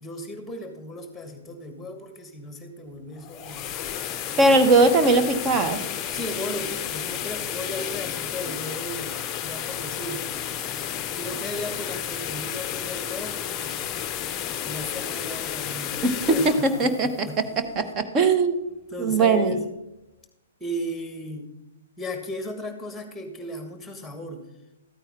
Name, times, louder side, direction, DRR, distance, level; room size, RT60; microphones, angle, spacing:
voice 1, 0.0-3.7 4.2-4.6 6.1-10.3 11.1-13.9 14.6-16.0 16.3-17.4 18.9-19.6 20.6-21.5 22.0-24.4, left 1 dB, 5° left, 6 dB, 1.8 m, -36 dB
sound 1, 3.1-18.0, left 10 dB, 25° left, 0.7 m, -32 dB
voice 2, 4.4-5.8 16.0-17.3 17.8-18.6 19.0-19.6, right 3 dB, 25° right, 9 dB, 1.1 m, -20 dB
14.0 x 9.0 x 3.7 m, 0.94 s
figure-of-eight pair, 120°, 0 cm